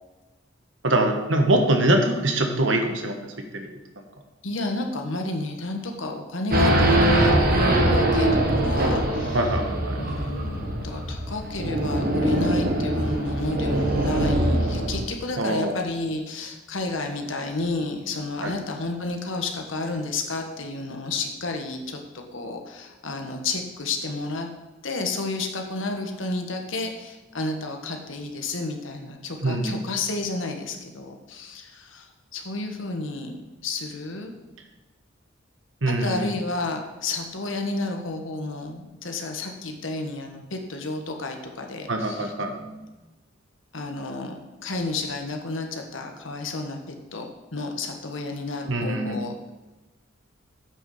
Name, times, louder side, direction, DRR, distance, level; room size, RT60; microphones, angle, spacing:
voice 1, 0.8-3.8 9.3-10.0 15.4-15.7 18.4-18.6 29.4-29.8 35.8-36.3 41.9-42.9 48.7-49.2, right 1 dB, 70° right, 4 dB, 1.4 m, -24 dB
voice 2, 4.4-9.5 10.0-24.5 24.8-32.1 32.3-33.4 33.6-34.3 35.9-42.3 43.7-49.5, left 2 dB, 80° left, 3 dB, 1.4 m, -31 dB
Race car auto racing / Idling / Accelerating revving vroom, 6.5-15.1, right 1 dB, 50° right, 1.5 m, -22 dB
8.5 x 6.2 x 5.6 m, 1.1 s
head